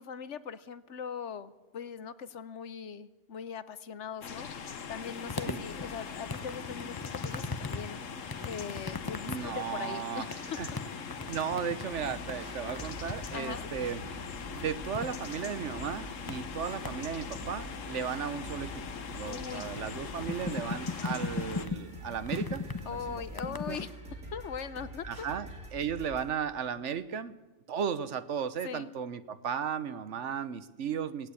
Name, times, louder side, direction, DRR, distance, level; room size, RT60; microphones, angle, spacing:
voice 1, 0.0-4.5 4.9-8.0 8.4-10.6 13.3-13.7 19.3-19.7 22.9-23.9 24.3-25.3 28.6-28.9, left 7 dB, 65° left, 15 dB, 1.1 m, -40 dB
sound 1, 4.2-21.7, left 6 dB, 85° left, 1.5 m, -42 dB
sound 2, 5.0-23.8, left 3 dB, 20° left, 0.7 m, -41 dB
voice 2, 9.3-10.3 10.6-10.7 11.3-14.0 14.5-18.8 19.1-23.8 25.0-27.3 27.7-31.3, right 7 dB, 70° right, 14 dB, 1.2 m, -35 dB
sound 3, 11.9-26.3, right 1 dB, 85° right, 3.9 m, -46 dB
18.0 x 17.5 x 8.4 m, 1.2 s
omnidirectional pair, 1.3 m